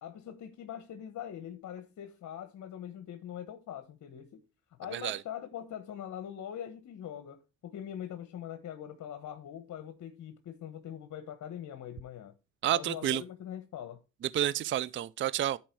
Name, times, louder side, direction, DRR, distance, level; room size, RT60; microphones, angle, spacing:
voice 1, 0.0-4.4 4.8-12.3 12.7-14.0, left 10 dB, 65° left, 1.2 m, -42 dB
voice 2, 12.6-13.2 14.3-15.6, right 11 dB, 40° right, 0.4 m, -30 dB
10.5 x 4.6 x 4.6 m
cardioid pair, 90°, 30 cm